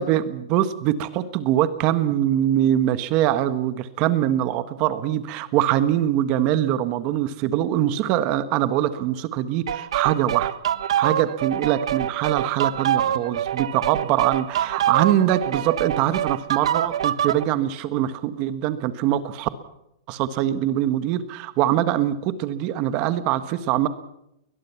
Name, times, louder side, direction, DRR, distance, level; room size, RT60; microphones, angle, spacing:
voice 1, 0.0-10.6 11.0-19.5 20.1-23.9, right 12 dB, 35° right, 12 dB, 1.5 m, -23 dB
sound 1, 9.7-17.4, right 10 dB, 75° right, 1.4 m, -25 dB
22.5 x 20.5 x 5.9 m, 0.79 s
supercardioid pair, 160°, 3 cm